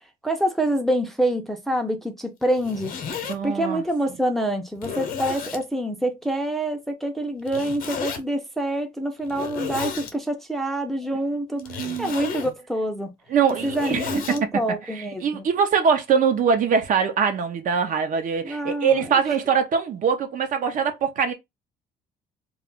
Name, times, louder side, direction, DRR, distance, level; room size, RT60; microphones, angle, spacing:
voice 1, 0.2-3.0 3.4-13.1 13.6-15.4 18.4-19.0, right 1 dB, ahead, 0.5 m, -26 dB
Zipper (clothing), 2.4-3.4 4.1-4.2 4.8-5.6 7.5-8.2 9.2-10.1 11.6-12.5 13.3-14.4, left 6 dB, 55° left, 0.7 m, -33 dB
voice 2, 3.2-3.8 11.6-12.1 13.3-14.4 14.9-21.3, right 6 dB, 50° right, 0.7 m, -23 dB
2.3 x 2.0 x 3.6 m
cardioid pair, 110°, 17 cm